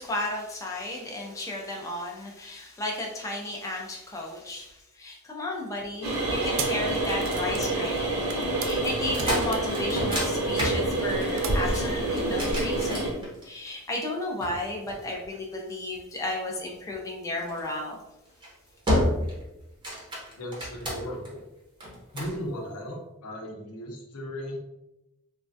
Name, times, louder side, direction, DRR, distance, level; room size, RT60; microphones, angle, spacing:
voice 1, 0.0-8.3 8.6-18.0, left 1 dB, 15° left, -1 dB, 0.3 m, -33 dB
sound 1, 6.0-13.1, right 2 dB, 80° right, 0.9 m, -28 dB
sound 2, 6.6-13.3, right 2 dB, 60° right, 0.4 m, -36 dB
sound 3, 9.0-13.7 14.4-15.7 17.5-17.8 18.3-18.5 18.9-19.4 19.7-21.3 21.8-22.4, equal, 20° right, 0.8 m, -30 dB
voice 2, 20.3-21.5 22.1-24.6, equal, 85° left, 0 dB, 0.7 m, -36 dB
3.2 x 2.2 x 2.6 m, 0.95 s
head